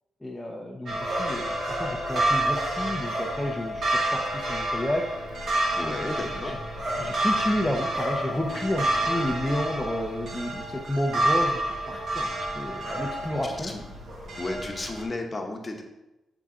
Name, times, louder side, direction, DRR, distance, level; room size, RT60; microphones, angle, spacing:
voice 1, 0.2-5.1 6.4-6.6 7.0-12.3 12.5-13.7, left 1 dB, 10° left, -2 dB, 0.6 m, -31 dB
sound 1, 0.9-15.0, right 1 dB, 65° right, 1.7 m, -29 dB
voice 2, 5.8-6.5 13.4-13.8 14.4-15.8, left 2 dB, 25° left, 2 dB, 0.9 m, -33 dB
7.1 x 3.8 x 3.7 m, 1.0 s
cardioid pair, 105°, 0 cm